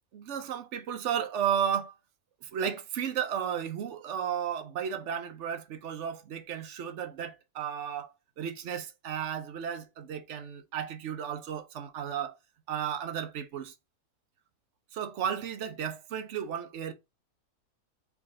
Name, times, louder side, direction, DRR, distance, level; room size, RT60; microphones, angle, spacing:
voice 1, 0.1-1.9 2.4-12.4 12.7-13.7 14.9-16.9, right 8 dB, 60° right, 0.8 m, -34 dB
4.7 x 2.7 x 3.7 m
omnidirectional pair, 1.6 m